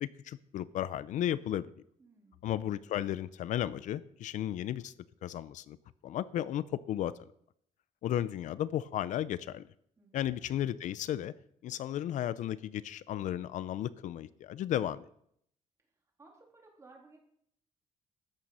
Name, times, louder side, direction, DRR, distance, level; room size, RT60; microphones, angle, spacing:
voice 1, 0.0-1.7 2.4-4.9 5.2-5.8 6.0-7.1 8.0-9.7 10.1-11.3 11.6-15.1, left 11 dB, 70° left, 17 dB, 0.5 m, -34 dB
voice 2, 2.0-2.5 10.0-10.3 16.2-17.2, right 3 dB, 25° right, 0 dB, 3.3 m, -58 dB
13.0 x 9.1 x 5.6 m, 0.69 s
cardioid pair, 155°, 13 cm